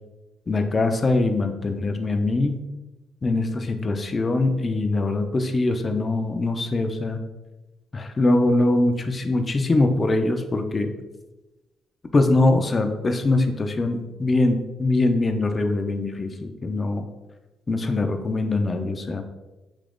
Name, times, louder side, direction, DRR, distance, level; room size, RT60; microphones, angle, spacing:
voice 1, 0.5-2.6 3.2-7.2 7.9-10.9 12.1-17.0 17.7-19.2, left 2 dB, 30° left, 6 dB, 0.3 m, -22 dB
3.0 x 2.5 x 3.4 m, 1.1 s
cardioid pair, 90°, 0 cm